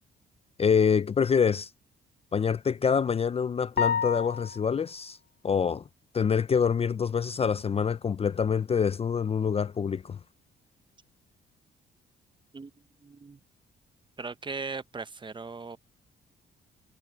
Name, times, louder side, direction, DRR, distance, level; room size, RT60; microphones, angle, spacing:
voice 1, 0.6-1.7 2.3-5.2 5.4-5.8 6.1-10.2, left 6 dB, 30° left, 0.5 m, -26 dB
sound 1, 3.8-4.8, left 7 dB, 55° left, 1.0 m, -29 dB
voice 2, 13.0-13.4 14.2-15.8, right 4 dB, 25° right, 0.8 m, -38 dB
cardioid pair, 90°, 20 cm